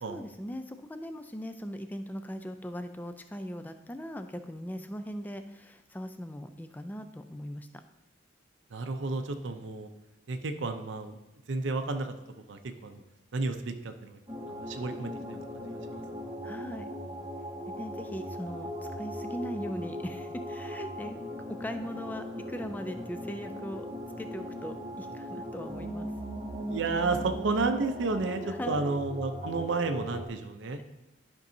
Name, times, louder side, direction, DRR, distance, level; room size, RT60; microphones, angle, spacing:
voice 1, 0.1-7.7 16.4-16.9 17.8-21.1 21.5-23.9 24.2-26.1 28.5-29.0, equal, 10° left, 8 dB, 0.3 m, -39 dB
voice 2, 8.7-9.9 10.3-11.2 11.5-12.1 12.5-13.0 13.3-14.2 14.5-15.6 15.9-16.0 26.7-30.8, right 3 dB, 80° right, 7 dB, 0.6 m, -32 dB
sound 1, 14.3-30.3, equal, 10° right, 0.9 m, -39 dB
12.0 x 5.3 x 2.7 m, 0.96 s
head